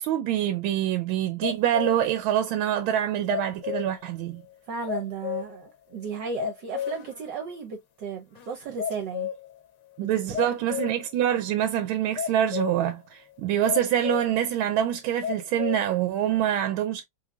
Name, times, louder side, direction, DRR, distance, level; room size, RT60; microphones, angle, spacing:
voice 1, 0.0-4.4 10.0-17.0, right 11 dB, 85° right, 1.4 m, -25 dB
sound 1, 1.4-2.2 2.5-2.6 3.3-4.1 4.5-4.6 4.9-5.7 6.0-6.1 6.4-7.2 7.5-7.6 8.4-8.5 8.8-9.6 10.3-11.1 12.2-12.9 13.7-14.4 14.8-14.9 15.2-15.9 16.4-16.5, left 10 dB, 65° left, 1.4 m, -32 dB
voice 2, 4.7-9.3 10.0-10.5, right 5 dB, 70° right, 1.3 m, -35 dB
3.9 x 3.1 x 2.2 m
omnidirectional pair, 2.2 m